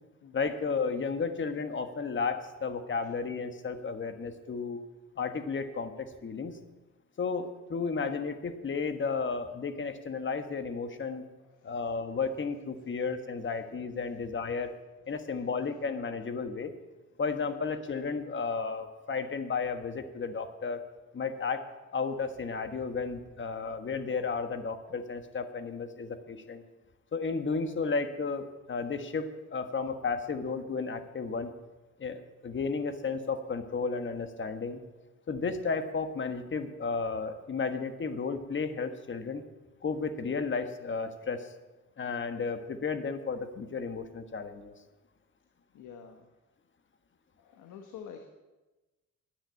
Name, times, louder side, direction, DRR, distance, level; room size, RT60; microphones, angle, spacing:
voice 1, 0.3-4.8 5.2-6.6 7.2-11.3 11.6-14.7 15.1-16.7 17.2-20.8 21.1-21.6 21.9-26.6 27.1-31.5 32.0-34.8 35.3-39.4 39.8-41.5 42.0-44.7, left 4 dB, 40° left, 8 dB, 1.4 m, -33 dB
voice 2, 45.7-46.3 47.4-48.3, left 7 dB, 85° left, 5 dB, 1.3 m, -47 dB
10.0 x 9.9 x 8.5 m, 1.1 s
cardioid pair, 90°, 30 cm